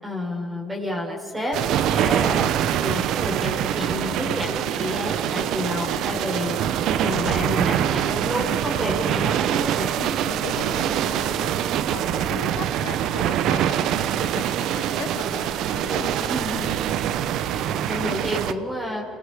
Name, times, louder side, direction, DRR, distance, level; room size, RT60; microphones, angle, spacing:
voice 1, 0.0-1.6 1.9-2.5 2.8-6.6 7.0-9.9 16.0-16.8 17.5-19.0, left 1 dB, 15° right, 1 dB, 5.2 m, -30 dB
sound 1, 1.5-18.5, right 10 dB, 65° right, 0.9 m, -24 dB
voice 2, 9.9-11.6 11.9-16.3 16.7-16.8, left 10 dB, 70° left, 12 dB, 1.1 m, -38 dB
29.0 x 19.0 x 5.1 m, 2.3 s
supercardioid pair, 80°, 0 cm